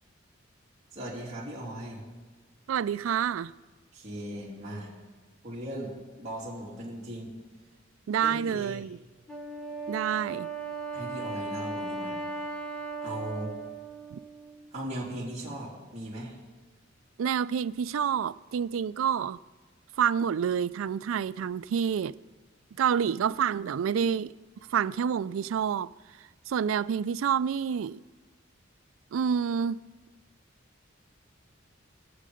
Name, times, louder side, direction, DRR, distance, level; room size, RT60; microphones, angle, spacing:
voice 1, 0.9-2.0 3.9-4.9 5.4-7.3 8.2-8.8 10.9-12.2 13.0-13.6 14.7-16.4, right 1 dB, 35° right, 3.3 m, -38 dB
voice 2, 2.7-3.5 8.1-9.0 9.9-10.5 14.1-14.2 17.2-19.4 20.0-22.2 22.8-24.3 24.7-25.9 26.5-28.0 29.1-29.8, right 7 dB, 80° right, 0.3 m, -28 dB
Wind instrument woodwind instrument, 9.3-14.7, right 3 dB, 5° left, 1.3 m, -37 dB
21.5 x 7.6 x 5.1 m
head